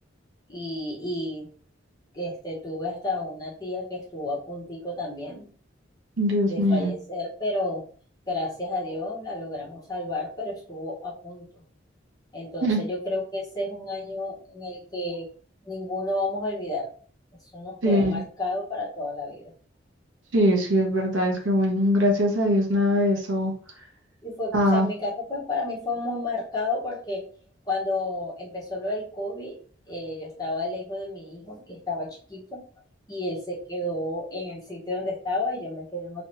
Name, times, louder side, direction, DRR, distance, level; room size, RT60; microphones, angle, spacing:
voice 1, 0.5-1.5 2.1-5.5 6.5-7.8 8.3-11.6 12.3-15.3 15.6-16.9 17.5-19.5 24.2-27.2 27.7-29.6 29.9-32.6 33.1-36.2, left 2 dB, 20° left, -6 dB, 1.1 m, -31 dB
voice 2, 6.2-6.9 12.6-12.8 17.8-18.2 20.3-23.5 24.5-24.9, equal, 85° right, 0 dB, 1.1 m, -22 dB
3.2 x 2.9 x 3.1 m, 0.43 s
head